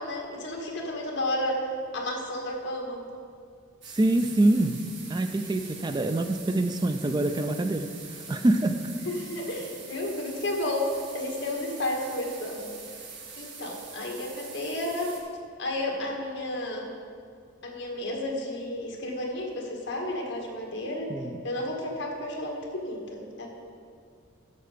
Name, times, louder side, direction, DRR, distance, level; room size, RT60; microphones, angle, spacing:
voice 1, 0.0-1.6 1.9-3.0 9.1-10.9 11.1-12.7 13.4-15.1 15.6-16.9 17.6-21.1 21.4-23.5, left 1 dB, 60° left, 0 dB, 1.8 m, -32 dB
sound 1, 3.8-15.2, right 4 dB, 60° right, 1.8 m, -44 dB
voice 2, 3.9-4.8 5.1-7.9 8.3-8.8 21.1-21.4, right 2 dB, 20° right, 8 dB, 0.3 m, -25 dB
11.0 x 6.9 x 5.1 m, 2.2 s
head